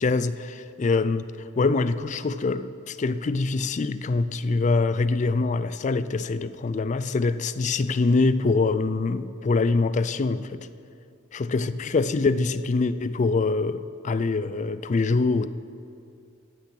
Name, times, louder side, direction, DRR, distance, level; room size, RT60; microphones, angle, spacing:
voice 1, 0.0-10.7 11.3-15.5, left 3 dB, 35° left, 14 dB, 0.4 m, -24 dB
15.0 x 9.2 x 5.8 m, 2.4 s
head